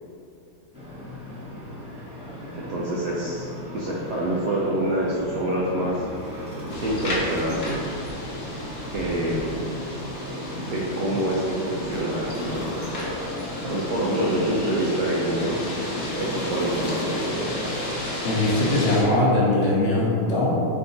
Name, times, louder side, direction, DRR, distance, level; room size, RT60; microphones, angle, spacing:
sound 1, 0.7-19.1, left 1 dB, 5° right, 0.6 m, -35 dB
voice 1, 2.5-6.0 6.3-6.4 6.8-7.8 8.9-9.7 10.6-12.8 13.6-15.6 16.2-17.3, right 1 dB, 75° right, -5 dB, 0.9 m, -26 dB
sound 2, 6.7-19.0, left 1 dB, 90° left, 0.5 m, -34 dB
voice 2, 18.2-20.6, left 2 dB, 50° left, -7 dB, 0.9 m, -21 dB
4.8 x 2.7 x 3.9 m, 2.5 s
omnidirectional pair, 2.2 m